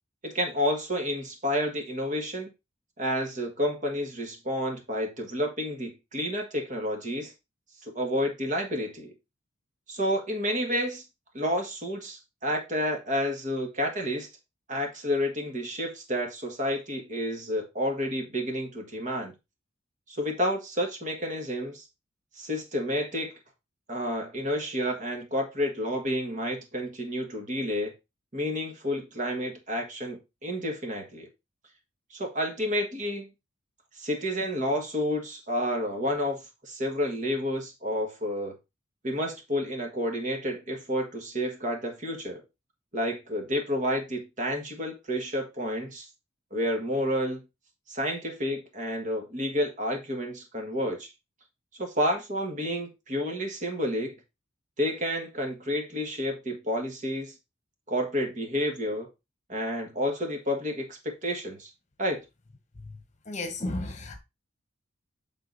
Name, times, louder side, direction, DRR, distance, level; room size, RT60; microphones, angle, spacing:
voice 1, 0.2-2.5 3.0-7.3 7.8-9.1 9.9-11.0 11.3-14.3 14.7-19.3 20.1-21.9 22.4-23.3 23.9-27.9 28.3-31.3 32.1-33.3 34.0-38.5 39.0-42.4 42.9-46.1 46.5-47.4 47.9-51.1 51.8-54.2 54.8-57.3 57.9-59.1 59.5-61.7 62.0-62.2, equal, 40° right, 1.6 m, -30 dB
voice 2, 63.3-64.2, left 2 dB, 35° left, 1.2 m, -34 dB
7.9 x 3.8 x 3.9 m
head